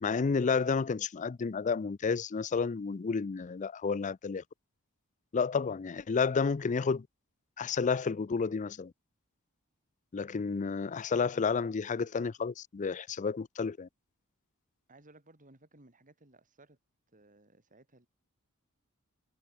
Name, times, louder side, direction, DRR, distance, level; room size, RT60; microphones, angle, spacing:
voice 1, 0.0-4.4 5.3-7.1 7.6-8.9 10.1-13.9, left 5 dB, 35° left, 0.4 m, -31 dB
voice 2, 14.9-16.8 17.1-18.1, right 2 dB, 35° right, 3.9 m, -59 dB
head